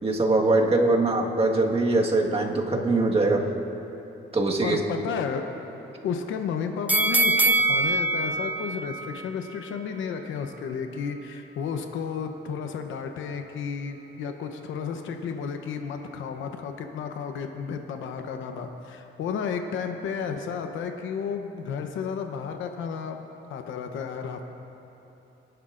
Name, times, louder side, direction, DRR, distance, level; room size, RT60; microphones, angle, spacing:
voice 1, 0.0-3.5 4.3-4.8, right 2 dB, 30° right, 0 dB, 1.6 m, -22 dB
voice 2, 4.6-5.5 6.0-23.2 23.5-24.4, left 6 dB, 80° left, 5 dB, 0.9 m, -32 dB
sound 1, 6.9-10.0 10.4-10.5, right 2 dB, 10° right, 0.6 m, -24 dB
22.0 x 11.5 x 2.6 m, 3.0 s
cardioid pair, 90°, 20 cm